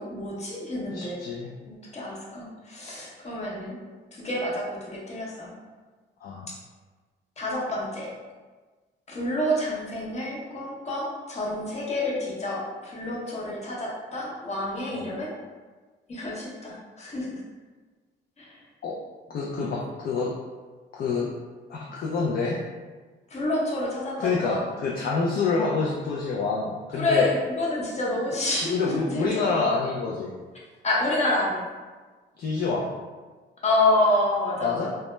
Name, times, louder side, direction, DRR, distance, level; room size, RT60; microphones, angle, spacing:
voice 1, 0.0-1.2 1.7-3.8 4.1-5.5 7.4-8.1 9.1-15.3 16.1-17.3 18.4-18.6 23.3-24.6 26.9-29.4 30.8-31.6 33.6-34.9, left 1 dB, 35° left, -5 dB, 0.8 m, -28 dB
voice 2, 0.9-1.5 6.2-6.5 14.9-15.0 18.8-19.0 19.3-20.4 20.9-21.3 21.7-22.6 24.2-27.3 28.7-30.3 32.4-32.9 34.6-34.9, left 4 dB, 50° left, -4 dB, 0.4 m, -27 dB
2.1 x 2.1 x 3.0 m, 1.4 s
cardioid pair, 90°, 20 cm